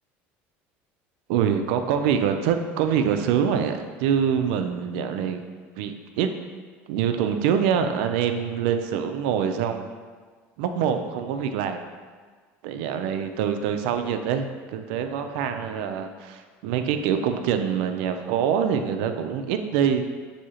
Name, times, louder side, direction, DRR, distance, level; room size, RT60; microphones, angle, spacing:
voice 1, 1.3-5.4 5.8-6.3 6.9-9.9 10.6-11.8 12.6-20.0, right 8 dB, 80° right, 7 dB, 0.4 m, -25 dB
6.1 x 2.7 x 2.9 m, 1.5 s
cardioid pair, 125°, 6 cm